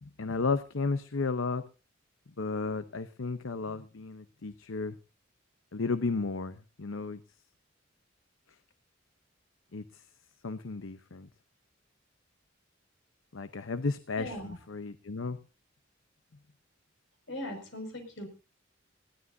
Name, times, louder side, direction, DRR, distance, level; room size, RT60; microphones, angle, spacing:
voice 1, 0.0-1.6 2.4-5.0 5.7-7.2 9.7-10.0 10.4-11.3 13.3-15.4, left 4 dB, 85° left, 12 dB, 0.8 m, -33 dB
voice 2, 14.2-14.6 17.3-18.3, left 1 dB, 65° left, 6 dB, 5.8 m, -39 dB
21.0 x 15.5 x 2.7 m, 0.31 s
head